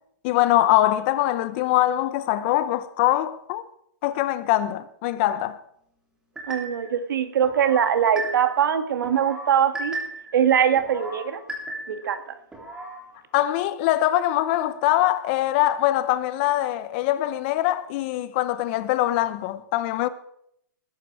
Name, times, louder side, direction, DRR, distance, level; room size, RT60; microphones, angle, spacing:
voice 1, 0.2-3.6 4.0-5.6 13.3-20.1, left 14 dB, 30° left, 0.8 m, -23 dB
sound 1, 6.4-6.9 7.4-8.7 9.0-10.4 10.8-12.1 12.5-13.0, right 2 dB, 5° right, 3.3 m, -35 dB
voice 2, 6.5-9.9 10.3-11.4 11.9-12.3, right 8 dB, 75° right, 2.0 m, -22 dB
20.0 x 11.0 x 4.8 m
hypercardioid pair, 160°, 11 cm